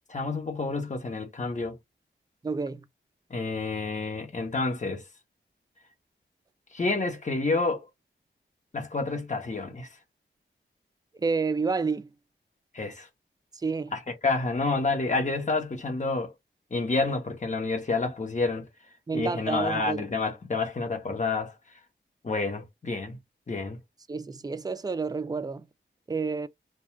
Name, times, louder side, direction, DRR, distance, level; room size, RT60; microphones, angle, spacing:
voice 1, 0.1-1.8 3.3-5.0 6.7-7.8 8.7-9.9 12.7-13.1 13.9-16.3 16.7-18.7 19.1-21.5 22.2-23.2 23.5-23.8, left 3 dB, 35° left, 0.9 m, -29 dB
voice 2, 2.4-2.8 11.1-12.1 13.6-13.9 19.1-20.1 24.1-25.7 26.1-26.5, right 4 dB, 20° right, 0.3 m, -29 dB
2.4 x 2.3 x 3.0 m
wide cardioid pair, 70°, 21 cm